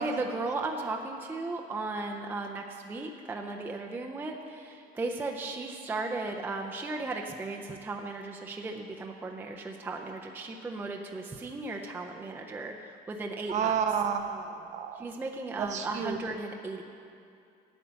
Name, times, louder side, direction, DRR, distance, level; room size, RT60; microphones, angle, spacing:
voice 1, 0.0-13.7 15.0-16.8, right 3 dB, 10° right, 2 dB, 0.5 m, -36 dB
voice 2, 13.5-15.1 15.6-16.2, right 7 dB, 45° right, 6 dB, 0.7 m, -30 dB
8.7 x 8.5 x 6.9 m, 2.5 s
cardioid pair, 165°, 17 cm